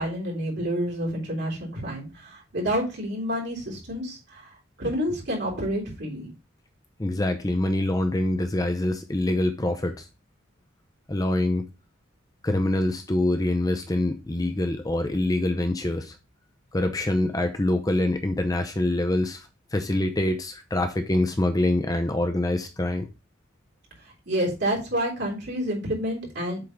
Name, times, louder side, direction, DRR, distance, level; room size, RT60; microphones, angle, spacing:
voice 1, 0.0-6.3 24.0-26.6, equal, 55° right, 3.4 m, -29 dB
voice 2, 7.0-10.1 11.1-11.7 12.4-16.2 16.7-23.1, left 1 dB, 15° left, 0.6 m, -25 dB
7.8 x 3.6 x 5.1 m
head